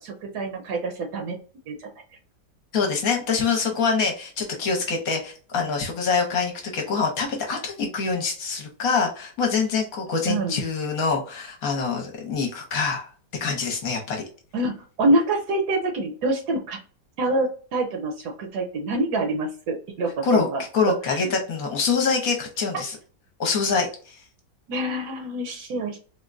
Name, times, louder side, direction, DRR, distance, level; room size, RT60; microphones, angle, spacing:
voice 1, 0.0-1.4 1.7-1.9 10.3-10.6 14.5-16.8 17.2-20.6 21.1-21.2 24.7-26.0, right 2 dB, 75° right, 3 dB, 1.2 m, -26 dB
voice 2, 2.7-13.1 13.4-14.2 20.2-20.5 20.7-23.0 23.4-24.2, left 5 dB, 65° left, 2 dB, 1.1 m, -25 dB
3.6 x 2.1 x 2.4 m, 0.39 s
omnidirectional pair, 1.8 m